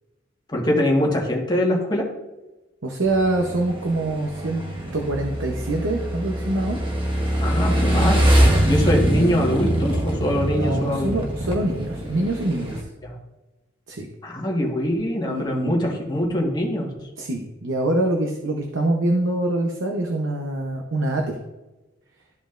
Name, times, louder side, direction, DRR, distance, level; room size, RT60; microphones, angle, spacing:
voice 1, 0.5-2.1 7.4-11.1 13.0-13.1 14.2-16.9, left 1 dB, 20° left, -2 dB, 1.5 m, -23 dB
voice 2, 2.8-4.6 4.9-6.8 10.6-12.9 13.9-14.1 15.3-15.7 17.2-21.4, right 1 dB, 70° right, 2 dB, 0.8 m, -25 dB
Motorcycle / Engine, 3.1-12.8, right 1 dB, 25° right, 1.1 m, -23 dB
13.0 x 5.2 x 2.5 m, 1.1 s
head